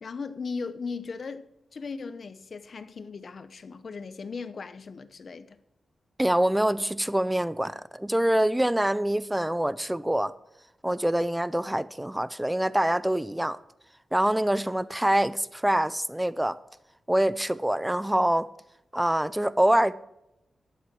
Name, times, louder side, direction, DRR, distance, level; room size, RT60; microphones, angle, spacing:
voice 1, 0.0-5.6, left 4 dB, 45° left, 0.8 m, -37 dB
voice 2, 6.2-10.3 10.8-13.6 14.1-16.6 17.1-18.5 18.9-19.9, right 1 dB, 5° right, 0.4 m, -25 dB
11.5 x 7.7 x 6.0 m
wide cardioid pair, 150°, 0 cm